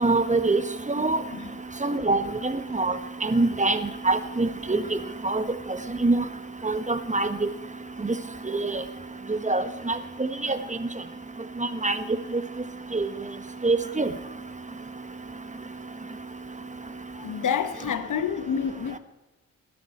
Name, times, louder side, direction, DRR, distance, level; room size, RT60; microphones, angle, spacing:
voice 1, 0.0-0.6 0.9-1.2 1.8-2.9 3.2-3.8 4.0-4.8 5.2-5.4 6.0-6.2 6.6-7.3 8.5-8.8 9.5-9.9 10.4-10.6 11.8-11.9 12.9-13.1 13.6-14.1, right 3 dB, 20° right, 1.3 m, -24 dB
voice 2, 1.3-1.6 17.1-19.0, left 7 dB, 60° left, 1.0 m, -28 dB
15.5 x 12.5 x 4.3 m
supercardioid pair, 40°, 35 cm